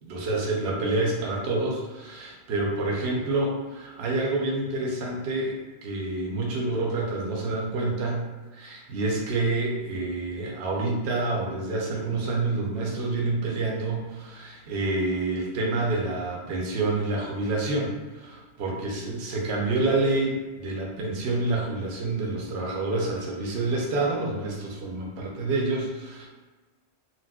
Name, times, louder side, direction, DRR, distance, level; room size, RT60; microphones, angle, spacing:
voice 1, 0.0-8.3 8.5-26.3, right 2 dB, 65° right, -2 dB, 0.9 m, -28 dB
4.1 x 2.2 x 2.2 m, 1.3 s
omnidirectional pair, 1.3 m